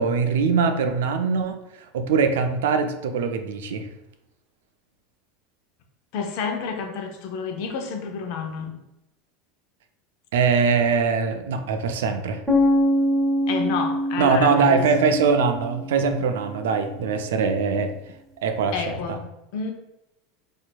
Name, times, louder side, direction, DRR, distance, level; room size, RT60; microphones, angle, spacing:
voice 1, 0.0-1.6 1.9-3.9 10.3-12.4 14.2-17.9 18.4-19.0, right 5 dB, 75° right, 7 dB, 0.3 m, -22 dB
voice 2, 6.1-8.8 13.5-14.9 18.7-19.2 19.5-19.7, left 5 dB, 60° left, 3 dB, 0.6 m, -29 dB
sound 1, 12.5-16.4, left 1 dB, ahead, 1.0 m, -24 dB
4.2 x 2.6 x 2.2 m, 0.90 s
hypercardioid pair, 90°, 0 cm